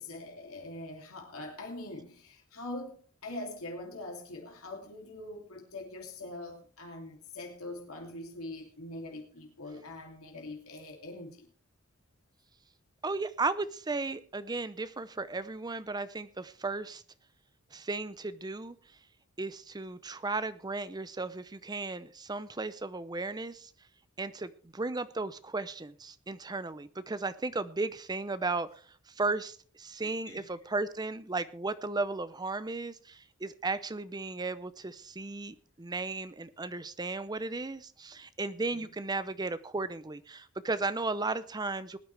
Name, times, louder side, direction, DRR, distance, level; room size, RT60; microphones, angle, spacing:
voice 1, 0.0-11.5 30.0-30.5 38.7-38.9, left 2 dB, 80° left, 2.9 m, -43 dB
voice 2, 13.0-17.0 17.7-18.8 19.4-23.7 24.2-28.7 29.1-42.0, right 3 dB, 20° right, 0.6 m, -35 dB
20.5 x 9.5 x 3.4 m
head